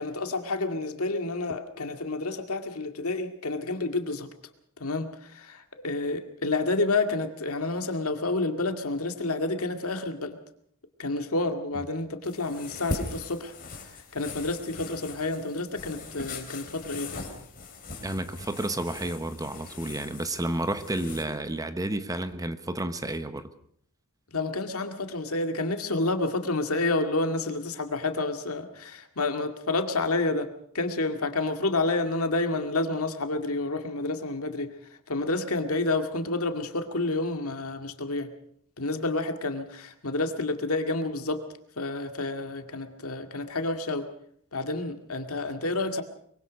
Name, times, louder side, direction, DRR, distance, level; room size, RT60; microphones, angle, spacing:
voice 1, 0.0-4.3 4.8-10.4 11.0-13.5 14.1-17.2 24.3-30.5 30.7-34.7 35.1-38.3 38.8-41.4 41.8-44.1 44.5-46.0, left 2 dB, 70° left, 6 dB, 2.2 m, -29 dB
sound 1, 12.2-21.2, left 2 dB, 40° left, 3.9 m, -40 dB
voice 2, 18.0-23.5, right 1 dB, 15° right, 11 dB, 1.0 m, -31 dB
23.5 x 23.0 x 5.2 m, 0.65 s
head